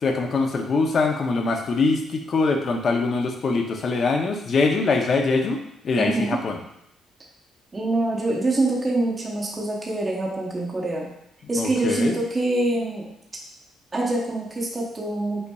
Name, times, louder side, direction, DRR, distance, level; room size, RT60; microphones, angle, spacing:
voice 1, 0.0-6.6 11.6-12.2, left 3 dB, 35° left, 3 dB, 0.5 m, -23 dB
voice 2, 6.0-6.4 7.7-11.1 11.5-13.1 13.9-15.5, right 2 dB, 15° right, -3 dB, 0.7 m, -25 dB
5.4 x 4.0 x 2.3 m, 0.79 s
cardioid pair, 175°, 0 cm